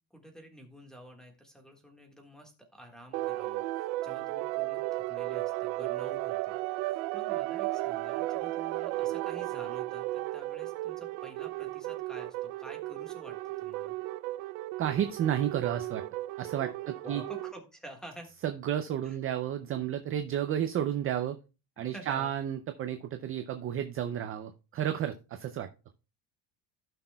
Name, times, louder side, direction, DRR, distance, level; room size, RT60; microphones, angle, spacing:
voice 1, 0.1-6.6 6.8-13.9 17.0-18.3 19.0-19.2 21.9-22.3, right 1 dB, ahead, 4 dB, 1.5 m, -50 dB
sound 1, 3.1-17.5, right 18 dB, 80° right, 0.6 m, -35 dB
voice 2, 14.8-16.0 16.4-17.2 18.4-21.4 21.8-25.7, right 10 dB, 30° right, 8 dB, 0.4 m, -32 dB
15.5 x 6.1 x 2.2 m, 0.30 s
cardioid pair, 150°, 47 cm